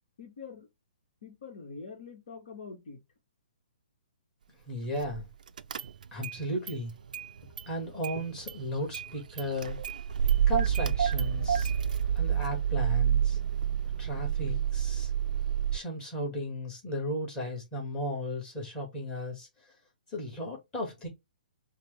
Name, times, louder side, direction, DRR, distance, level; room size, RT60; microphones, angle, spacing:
voice 1, 0.2-0.7 1.2-3.0, left 5 dB, 55° left, 1.5 m, -44 dB
voice 2, 4.7-5.3 6.1-6.9 7.7-9.8 10.5-11.7 12.2-13.4 14.0-15.1 15.7-19.5 20.1-21.1, left 1 dB, 15° left, 2.3 m, -35 dB
Car / Engine starting, 5.0-5.2 5.6-6.4 6.7-7.7 8.0-15.8, right 9 dB, 60° right, 0.4 m, -29 dB
5.8 x 2.4 x 3.5 m
figure-of-eight pair, 125°, 5 cm